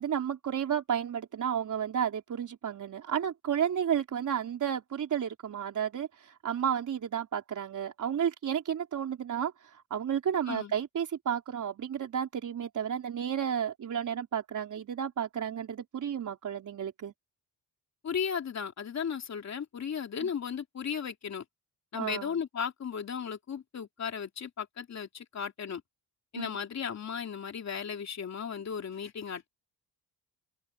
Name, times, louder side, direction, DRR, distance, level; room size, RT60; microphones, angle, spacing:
voice 1, 0.0-6.1 6.4-9.5 9.9-17.1 20.2-20.3 21.9-22.4 26.3-26.5, right 8 dB, 50° right, 3.9 m, -32 dB
voice 2, 18.0-21.4 21.9-25.8 26.3-29.5, left 7 dB, 40° left, 3.1 m, -35 dB
open air
cardioid pair, 165°, 40 cm